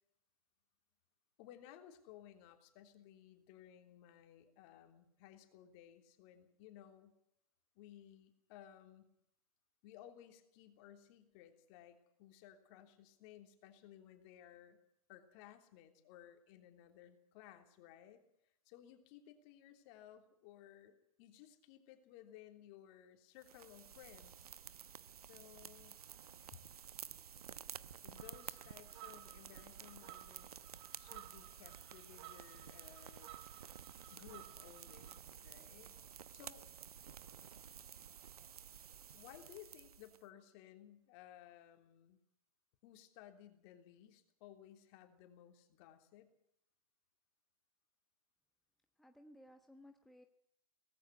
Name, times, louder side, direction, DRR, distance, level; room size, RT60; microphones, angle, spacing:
voice 1, 1.4-7.2 7.7-9.1 9.8-14.8 15.1-18.2 18.6-24.5 25.2-26.0 26.5-26.6 28.0-30.6 31.0-33.4 34.1-36.0 36.3-36.6 39.1-42.2 42.8-46.3, left 11 dB, 40° left, 6 dB, 3.3 m, -59 dB
sound 1, 23.4-40.2, right 8 dB, 85° right, 1.0 m, -53 dB
sound 2, 28.2-35.2, right 15 dB, 45° right, 1.8 m, -58 dB
voice 2, 49.0-50.3, left 1 dB, ahead, 4 dB, 1.2 m, -59 dB
19.0 x 14.5 x 9.7 m, 0.74 s
hypercardioid pair, 130°, 19 cm